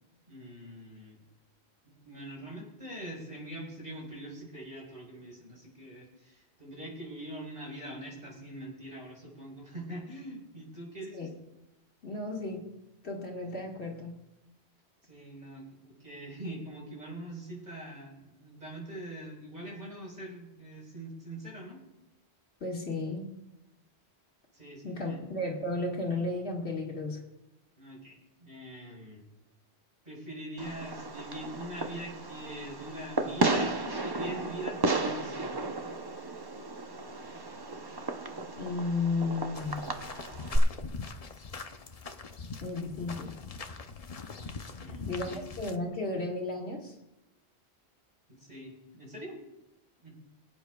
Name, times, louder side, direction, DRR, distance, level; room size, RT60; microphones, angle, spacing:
voice 1, 0.3-1.2 1.8-11.3 15.1-21.8 24.5-25.2 27.8-29.2 30.0-35.6 44.8-45.4 48.3-49.4 50.0-50.2, right 1 dB, 45° right, -2 dB, 4.7 m, -43 dB
voice 2, 12.0-12.7 13.0-14.2 22.6-23.3 24.8-27.2 38.5-39.9 42.6-43.4 45.1-46.9, left 2 dB, 75° left, -1 dB, 2.2 m, -34 dB
Fireworks, 30.6-40.6, right 2 dB, 25° right, 0.6 m, -34 dB
sound 1, 39.5-45.8, left 4 dB, 40° left, 0.7 m, -42 dB
26.0 x 8.8 x 2.3 m, 0.93 s
omnidirectional pair, 1.1 m